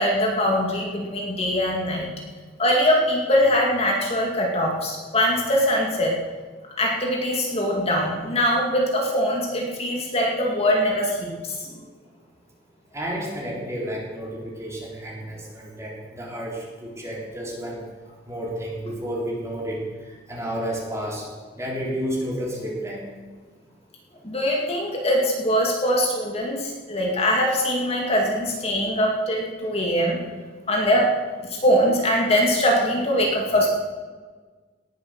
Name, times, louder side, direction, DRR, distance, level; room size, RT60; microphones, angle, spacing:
voice 1, 0.0-2.1 2.6-6.2 6.8-11.8 24.2-30.2 30.7-31.0 31.5-33.7, equal, 35° left, -1 dB, 2.3 m, -22 dB
voice 2, 12.9-17.8 18.2-19.8 20.3-21.2 21.6-23.1, equal, 15° right, -3 dB, 3.5 m, -31 dB
18.5 x 8.2 x 6.4 m, 1.4 s
head